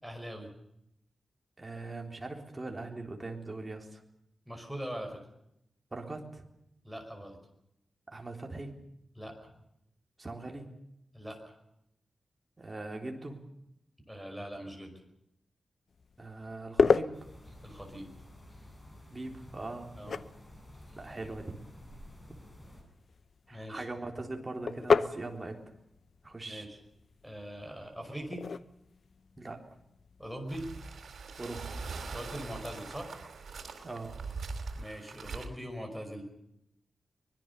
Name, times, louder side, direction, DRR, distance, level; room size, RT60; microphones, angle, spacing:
voice 1, 0.0-0.5 4.5-5.2 6.8-7.4 9.2-9.3 11.1-11.5 14.1-15.0 17.6-18.1 20.0-20.2 23.5-23.9 26.5-26.8 27.2-28.4 30.2-30.7 32.1-33.1 34.7-36.2, equal, ahead, 5 dB, 5.4 m, -41 dB
voice 2, 1.6-4.0 5.9-6.4 8.1-8.7 10.2-10.7 12.6-13.4 16.2-17.1 19.1-20.0 21.0-21.6 23.5-25.6 26.2-26.7 29.4-29.6 31.4-31.8 33.8-34.2, right 2 dB, 20° right, 2 dB, 3.7 m, -41 dB
sound 1, 15.9-31.1, left 5 dB, 55° left, 0.8 m, -35 dB
sound 2, 17.1-22.8, left 1 dB, 20° left, 6.9 m, -52 dB
sound 3, 30.5-35.5, right 4 dB, 80° right, 4.1 m, -42 dB
24.5 x 21.0 x 6.9 m, 0.79 s
wide cardioid pair, 150°, 0 cm